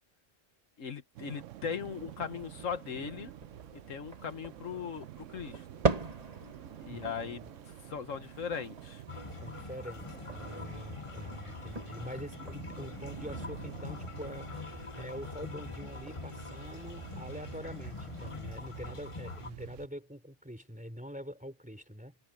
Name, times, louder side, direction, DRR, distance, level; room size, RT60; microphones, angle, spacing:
voice 1, 0.8-3.3 3.7-5.6 6.8-7.4 7.8-9.0, left 7 dB, 75° left, 1.6 m, -39 dB
sound 1, 1.1-19.9, right 13 dB, 75° right, 0.9 m, -49 dB
sound 2, 1.7-18.3, right 3 dB, 30° right, 1.6 m, -42 dB
voice 2, 6.9-7.5 9.4-22.2, equal, 5° right, 3.6 m, -45 dB
sound 3, 9.1-19.5, left 4 dB, 30° left, 0.9 m, -44 dB
omnidirectional pair, 1.3 m